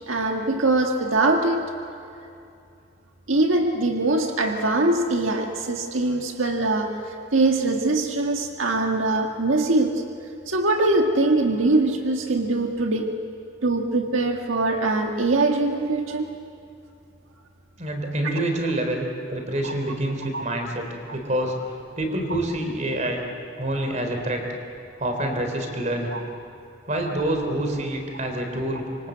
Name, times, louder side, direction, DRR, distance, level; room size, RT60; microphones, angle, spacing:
voice 1, 0.1-1.6 3.3-10.0 10.5-13.1 13.6-16.3 18.2-18.3 19.6-19.7 20.3-20.5 26.1-26.2, right 2 dB, 90° right, 3 dB, 1.7 m, -22 dB
voice 2, 17.8-20.9 21.1-21.6 22.0-23.2 23.6-24.4 25.0-26.1 26.9-29.1, right 1 dB, 35° right, 4 dB, 3.8 m, -27 dB
26.0 x 25.0 x 8.0 m, 2.5 s
head